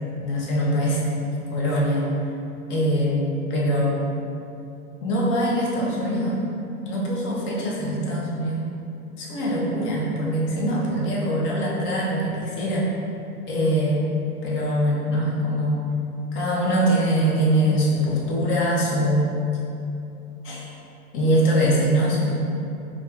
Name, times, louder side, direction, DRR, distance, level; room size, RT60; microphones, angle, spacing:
voice 1, 0.2-1.0 1.5-2.1 2.7-4.0 5.0-6.4 6.8-8.6 9.2-12.9 13.5-14.0 14.4-15.8 16.3-19.3 20.4-20.7 21.1-22.3, equal, 25° left, -4 dB, 0.7 m, -23 dB
4.3 x 2.3 x 2.5 m, 2.8 s
hypercardioid pair, 110°, 45 cm